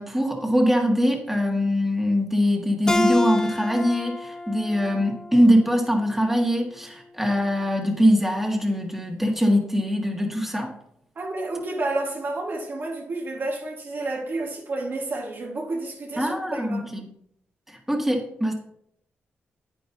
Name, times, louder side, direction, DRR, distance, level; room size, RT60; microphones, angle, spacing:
voice 1, 0.0-10.7 16.2-17.1 17.7-18.5, equal, 5° right, 1.9 m, -22 dB
Keyboard (musical), 2.9-6.1, left 2 dB, 15° left, 0.7 m, -28 dB
voice 2, 11.1-16.9, right 2 dB, 55° right, 1.8 m, -30 dB
9.2 x 9.1 x 2.8 m
cardioid pair, 60°, 4 cm